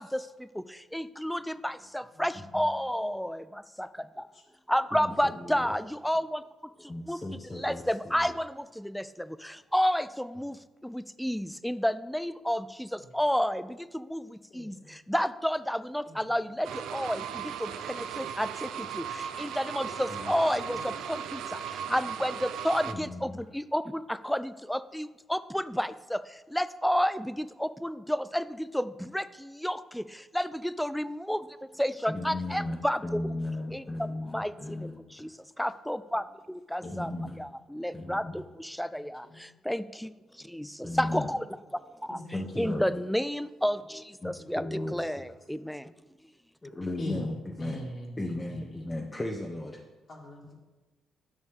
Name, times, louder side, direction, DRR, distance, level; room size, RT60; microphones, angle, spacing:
voice 1, 0.0-4.3 4.7-6.4 6.8-7.2 7.5-31.5 31.8-33.2 33.7-37.1 37.4-41.4 42.0-42.2 42.6-45.9, equal, ahead, 15 dB, 0.3 m, -31 dB
voice 2, 4.9-5.7 6.9-8.3 20.1-20.2 22.9-23.4 32.1-35.0 36.8-37.4 37.9-38.4 40.8-41.3 42.3-42.9 44.2-45.2 46.6-47.8 48.2-49.8, left 1 dB, 20° left, 1 dB, 0.8 m, -36 dB
voice 3, 14.5-14.9 16.1-16.2 36.8-37.0 37.9-38.3 39.2-39.4 42.1-42.2 47.0-47.3 47.6-48.2 50.1-50.5, left 1 dB, 45° left, -3 dB, 1.9 m, -41 dB
sound 1, 16.6-22.9, right 8 dB, 85° right, 0.4 m, -37 dB
9.7 x 6.2 x 3.6 m, 1.2 s
cardioid pair, 90°, 0 cm